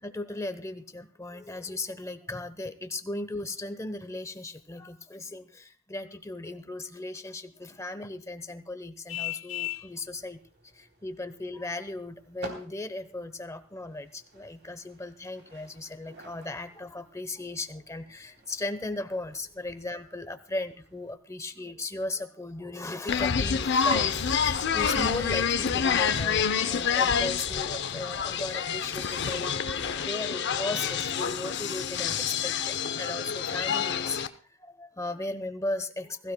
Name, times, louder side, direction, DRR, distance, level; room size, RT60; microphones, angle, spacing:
voice 1, 0.0-10.4 10.7-34.2 34.6-36.3, left 2 dB, 15° left, 11 dB, 0.8 m, -37 dB
Vehicle horn car horn honking, 9.1-9.9, left 16 dB, 85° left, 1.0 m, -34 dB
sound 1, 9.7-21.1, right 3 dB, 55° right, 3.3 m, -52 dB
sound 2, 23.1-34.3, left 7 dB, 55° left, 0.6 m, -27 dB
21.0 x 15.5 x 2.2 m, 0.43 s
head